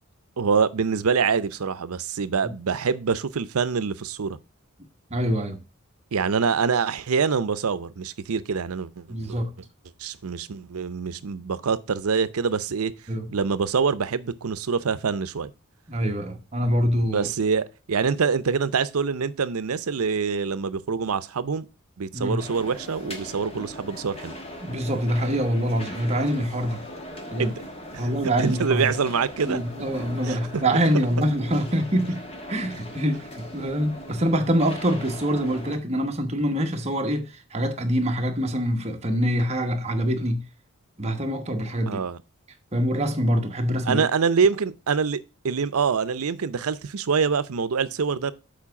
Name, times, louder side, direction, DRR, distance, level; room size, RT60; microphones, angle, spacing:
voice 1, 0.4-4.4 6.1-9.4 10.0-12.9 13.3-15.5 17.1-21.7 22.0-24.3 27.4-27.5 27.9-28.1 28.4-29.6 30.2-30.4 30.7-30.8 41.9-42.2 43.9-45.2 45.4-48.3, right 5 dB, 80° right, 0.6 m, -25 dB
voice 2, 5.1-5.6 9.1-9.5 13.1-13.3 15.9-17.3 22.1-22.5 24.6-26.8 27.3-27.6 28.0-28.9 29.4-40.4 41.0-42.0 42.7-44.0, equal, 30° right, 1.0 m, -25 dB
sound 1, 22.4-35.8, left 1 dB, 25° left, 1.3 m, -39 dB
7.3 x 4.6 x 5.7 m
head